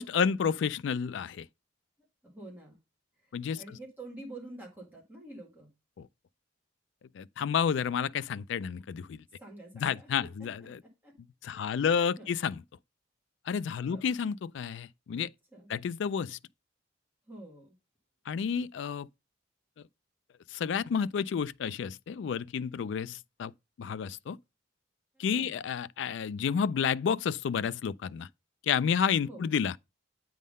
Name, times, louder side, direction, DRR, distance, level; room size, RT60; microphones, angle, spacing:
voice 1, 0.0-1.5 3.3-3.6 6.0-6.1 7.1-9.2 9.8-10.8 11.4-12.6 13.5-15.3 15.7-16.4 18.3-19.1 20.5-23.5 23.8-24.4 25.2-28.3 28.6-29.8, left 7 dB, 65° left, 0.3 m, -30 dB
voice 2, 2.2-2.8 3.2-5.7 9.4-10.5 10.8-11.1 11.5-12.3 13.8-14.0 15.5-15.7 17.3-17.8 25.1-25.6 29.3-29.4, right 2 dB, 10° right, 1.8 m, -48 dB
8.4 x 3.7 x 5.3 m
head